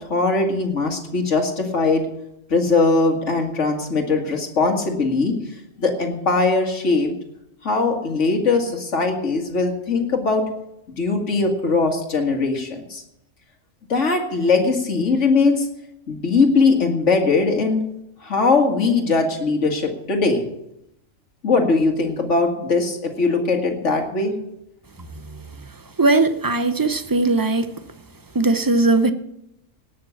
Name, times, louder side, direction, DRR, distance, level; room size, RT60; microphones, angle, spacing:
voice 1, 0.0-2.0 2.5-5.3 5.8-7.1 7.6-10.4 11.0-13.0 13.9-15.7 16.1-17.8 18.2-20.5 21.4-24.4, left 3 dB, 65° left, 3 dB, 2.3 m, -20 dB
voice 2, 26.0-27.7 28.3-29.1, right 2 dB, 30° right, 11 dB, 0.4 m, -18 dB
18.0 x 6.6 x 7.1 m, 0.82 s
omnidirectional pair, 1.4 m